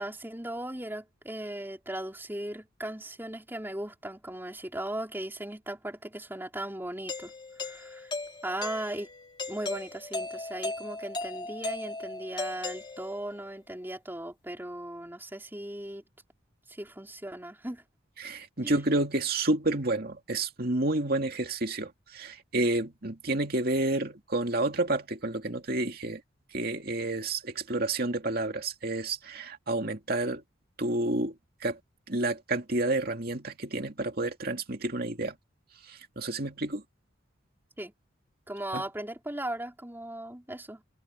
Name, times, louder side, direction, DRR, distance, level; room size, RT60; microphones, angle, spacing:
voice 1, 0.0-7.3 7.6-8.1 8.4-9.1 9.5-16.0 16.7-17.8 18.6-18.8 37.8-37.9 38.5-40.8, right 1 dB, 10° right, 3.5 m, -37 dB
Doorbell, 7.1-13.4, left 3 dB, 25° left, 2.3 m, -37 dB
voice 2, 18.2-26.2 26.5-30.4 30.8-31.3 31.6-31.8 32.1-35.4 36.2-36.8 38.7-38.8, right 2 dB, 50° right, 2.5 m, -30 dB
open air
head